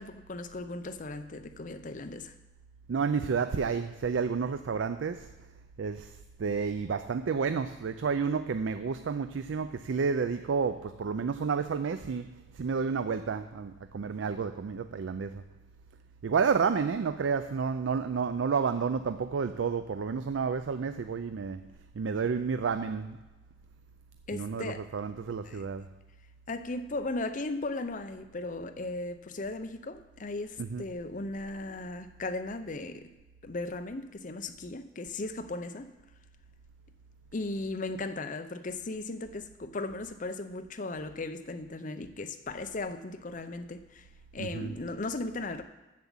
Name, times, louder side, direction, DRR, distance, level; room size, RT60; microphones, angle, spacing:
voice 1, 0.0-2.3 24.3-24.9 25.4-25.6 26.5-33.1 33.4-35.9 37.3-44.1 44.3-45.6, left 2 dB, 45° left, 0.7 m, -37 dB
voice 2, 2.9-5.3 5.8-15.4 16.2-21.6 21.9-23.2 24.3-25.9 30.6-30.9 44.4-44.7, right 5 dB, 85° right, 0.4 m, -30 dB
7.6 x 7.2 x 7.1 m
head